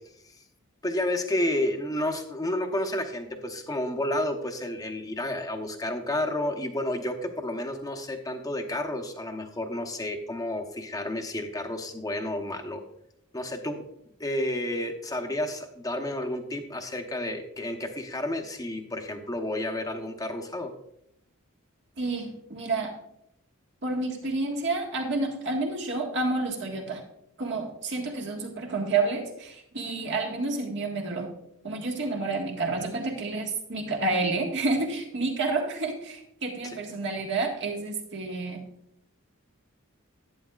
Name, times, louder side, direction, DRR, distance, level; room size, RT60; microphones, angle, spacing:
voice 1, 0.8-12.8 13.3-13.8 14.2-20.7 36.7-36.8, left 1 dB, 15° left, 5 dB, 0.9 m, -31 dB
voice 2, 22.0-22.9 23.8-27.0 27.4-31.3 31.6-38.6, right 3 dB, 60° right, 1 dB, 1.6 m, -29 dB
11.0 x 9.0 x 2.4 m, 0.77 s
head